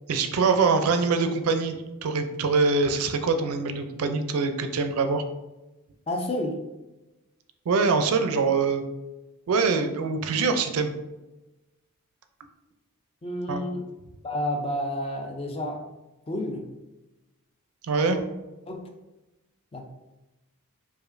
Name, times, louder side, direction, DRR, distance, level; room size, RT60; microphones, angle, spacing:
voice 1, 0.1-5.2 7.7-8.8 9.5-10.9 13.5-13.6 17.8-18.2, right 4 dB, 75° right, 7 dB, 0.4 m, -24 dB
voice 2, 6.1-6.7 13.2-13.9 14.2-15.8 16.3-16.7 18.1-18.2 18.7-18.9 19.7-19.8, left 1 dB, 25° left, 3 dB, 0.4 m, -30 dB
4.9 x 2.5 x 2.5 m, 1.0 s
head